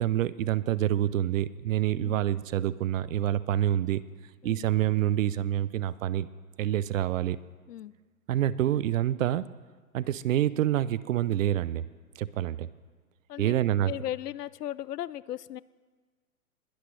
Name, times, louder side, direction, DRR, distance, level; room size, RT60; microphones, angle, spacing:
voice 1, 0.0-4.0 4.4-6.3 6.6-7.4 8.3-9.5 9.9-11.9 12.2-12.7 13.4-13.9, right 12 dB, 60° right, 18 dB, 0.6 m, -27 dB
voice 2, 13.8-15.6, left 12 dB, 90° left, 20 dB, 0.6 m, -36 dB
20.5 x 12.5 x 3.2 m, 1.4 s
hypercardioid pair, 140°, 46 cm